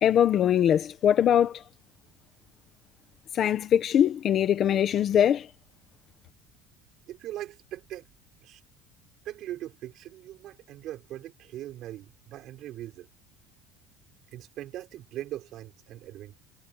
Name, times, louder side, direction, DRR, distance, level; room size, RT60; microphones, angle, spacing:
voice 1, 0.0-1.6 3.3-5.5, left 9 dB, 30° left, 1.1 m, -22 dB
voice 2, 7.1-8.1 8.4-8.6 9.2-13.1 14.3-16.4, right 13 dB, 45° right, 6.5 m, -40 dB
cardioid pair, 175°, 0 cm